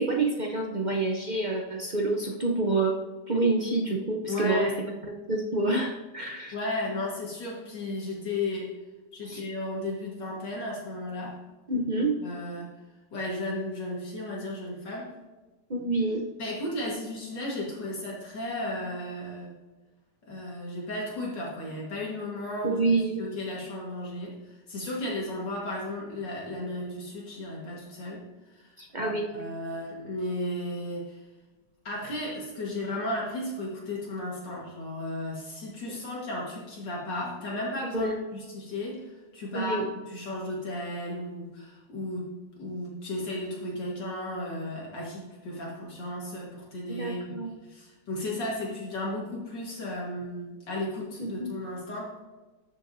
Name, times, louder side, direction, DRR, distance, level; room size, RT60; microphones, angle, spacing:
voice 1, 0.0-3.0 3.3-4.7 5.3-6.5 9.3-9.4 11.7-12.1 15.7-16.2 22.6-23.2 28.8-29.5 35.9-36.0 37.9-38.2 39.5-39.9 46.9-47.5 51.2-51.5, right 2 dB, 55° right, 1 dB, 0.5 m, -27 dB
voice 2, 4.3-4.8 6.5-8.7 9.1-11.4 11.7-12.7 13.1-15.1 16.4-19.5 20.3-24.4 24.7-28.2 28.5-31.2 31.9-39.8 40.1-42.3 42.6-47.4 47.7-52.2, left 1 dB, 70° left, -4 dB, 2.3 m, -34 dB
13.0 x 7.0 x 2.7 m, 1.2 s
omnidirectional pair, 2.0 m